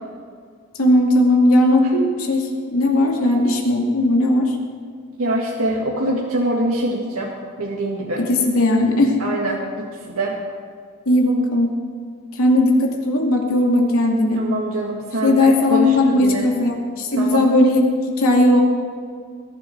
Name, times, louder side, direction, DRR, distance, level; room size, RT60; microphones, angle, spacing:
voice 1, 0.8-4.5 8.2-9.1 11.1-11.7 12.4-14.4 15.2-17.8 18.2-18.6, left 1 dB, 85° left, 1 dB, 2.5 m, -17 dB
voice 2, 5.2-7.3 7.6-8.3 9.2-10.4 14.4-16.5 17.2-17.4, right 1 dB, 85° right, -3 dB, 1.8 m, -24 dB
20.5 x 12.0 x 4.6 m, 2.1 s
head